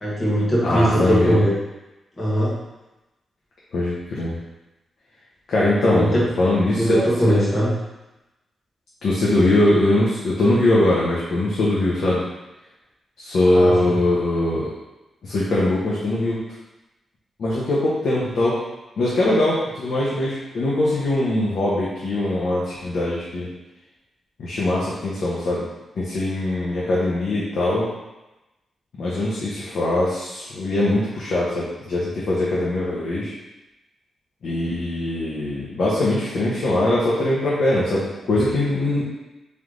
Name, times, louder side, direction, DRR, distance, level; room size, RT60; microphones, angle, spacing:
voice 1, 0.0-1.5 2.2-2.6 5.9-6.2 6.8-7.8 13.5-13.9, equal, 25° left, -7 dB, 1.5 m, -20 dB
voice 2, 0.6-1.4 3.7-4.4 5.5-7.5 9.0-12.2 13.2-14.7 15.2-16.4 17.4-18.6 19.0-23.5 24.4-25.6 25.9-27.9 29.0-33.3 34.4-39.0, left 1 dB, 65° left, -7 dB, 0.8 m, -21 dB
3.4 x 3.2 x 3.8 m, 1.0 s
wide cardioid pair, 140°, 0 cm